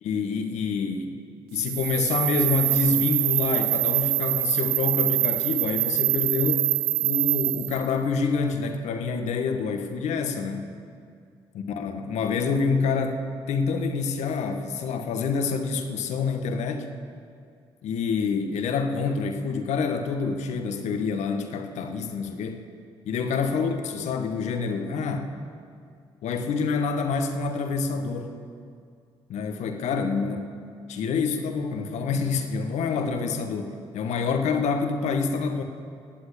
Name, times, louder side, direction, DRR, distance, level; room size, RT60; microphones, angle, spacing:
voice 1, 0.0-1.1 1.5-6.7 7.0-10.7 11.5-13.2 13.5-16.9 17.8-22.6 23.1-25.3 26.2-28.3 29.3-30.4 30.9-35.6, left 5 dB, 70° left, 5 dB, 1.5 m, -27 dB
sound 1, 1.5-7.9, right 16 dB, 85° right, 0.5 m, -25 dB
19.5 x 7.9 x 8.5 m, 2.3 s
hypercardioid pair, 50°, 12 cm